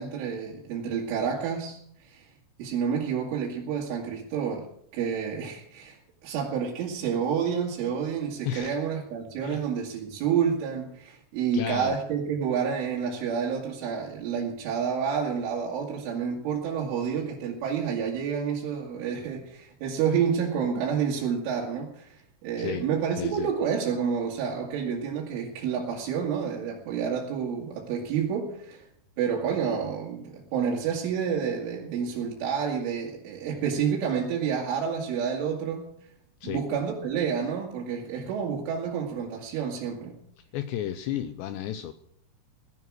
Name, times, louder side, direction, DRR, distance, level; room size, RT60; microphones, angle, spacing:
voice 1, 0.0-2.3 2.6-4.7 4.9-28.9 29.2-35.9 36.4-40.1, right 7 dB, 75° right, -3 dB, 4.6 m, -29 dB
voice 2, 8.4-8.8 9.4-9.6 11.5-12.0 22.6-23.5 36.4-36.6 40.5-41.9, left 11 dB, 80° left, 11 dB, 2.6 m, -33 dB
17.0 x 11.0 x 6.3 m, 0.70 s
omnidirectional pair, 5.7 m